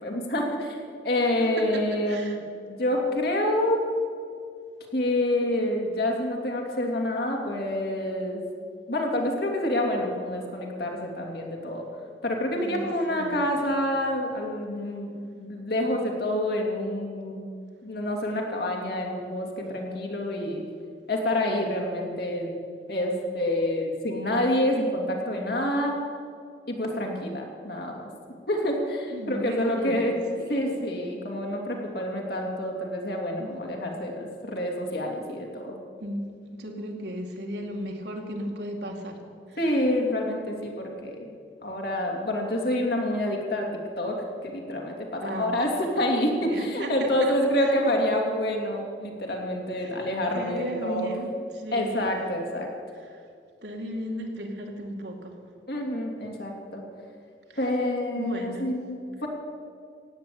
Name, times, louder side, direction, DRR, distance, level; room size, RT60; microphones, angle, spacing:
voice 1, 0.0-3.8 4.9-8.4 8.9-11.8 12.2-17.5 17.8-20.6 21.1-22.6 22.9-25.9 26.7-28.1 28.5-30.1 30.5-35.8 39.6-41.3 41.6-43.7 44.0-44.1 44.4-51.1 51.7-52.7 55.7-56.8 57.6-59.3, left 1 dB, 60° left, 1 dB, 2.9 m, -27 dB
voice 2, 1.7-2.4 12.6-13.4 29.1-30.0 30.3-30.6 33.4-33.5 36.0-36.2 36.6-39.2 39.5-39.6 45.1-45.5 46.5-47.3 47.6-47.7 49.8-50.0 50.3-52.0 53.1-53.2 53.6-55.4 57.5-57.7 58.2-58.7, right 1 dB, 70° right, 1 dB, 2.4 m, -35 dB
16.0 x 9.7 x 8.6 m, 2.2 s
head